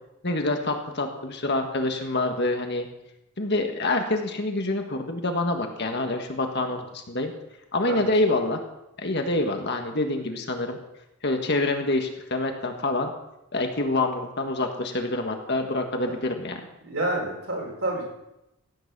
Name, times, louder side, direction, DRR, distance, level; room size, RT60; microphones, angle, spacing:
voice 1, 0.2-2.9 3.4-7.3 7.7-8.6 9.0-10.8 11.2-13.1 13.5-16.6, left 2 dB, 50° left, 4 dB, 1.7 m, -26 dB
voice 2, 16.8-18.1, right 1 dB, 60° right, -1 dB, 5.2 m, -29 dB
16.0 x 9.3 x 6.2 m, 0.89 s
head